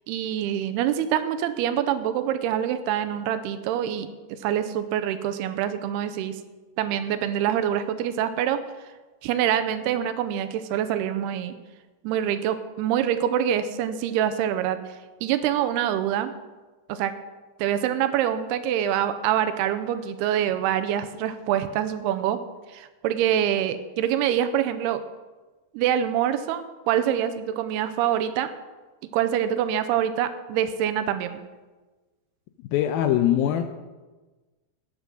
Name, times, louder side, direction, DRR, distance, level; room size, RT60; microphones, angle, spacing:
voice 1, 0.1-6.4 6.8-8.6 9.2-11.6 12.0-14.8 15.2-16.3 16.9-17.1 17.6-22.4 22.7-25.0 25.7-28.5 29.1-31.4, right 10 dB, 85° right, 11 dB, 2.6 m, -25 dB
voice 2, 32.7-33.6, left 11 dB, 85° left, 7 dB, 2.2 m, -22 dB
11.5 x 9.0 x 6.1 m, 1.2 s
omnidirectional pair, 4.7 m